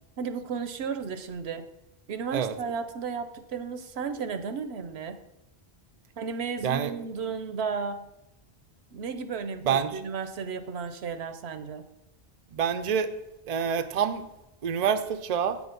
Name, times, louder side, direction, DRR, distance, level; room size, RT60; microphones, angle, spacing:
voice 1, 0.2-1.7 2.1-5.2 6.2-8.0 8.9-11.9, right 5 dB, 80° right, 10 dB, 1.0 m, -34 dB
voice 2, 6.6-6.9 9.6-10.0 12.5-13.1 13.5-14.3 14.6-15.6, right 7 dB, 50° right, 9 dB, 0.6 m, -27 dB
8.4 x 6.2 x 5.2 m, 0.91 s
omnidirectional pair, 1.1 m